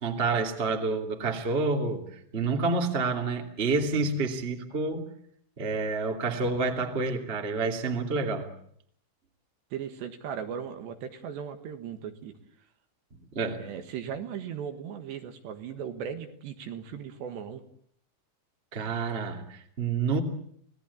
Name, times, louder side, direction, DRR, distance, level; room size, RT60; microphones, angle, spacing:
voice 1, 0.0-5.1 5.6-8.5 13.3-13.6 18.7-20.2, right 4 dB, 20° right, 4 dB, 1.7 m, -28 dB
voice 2, 9.7-12.3 13.5-17.6, right 8 dB, 70° right, 7 dB, 3.6 m, -37 dB
28.0 x 18.5 x 8.5 m, 0.66 s
omnidirectional pair, 5.5 m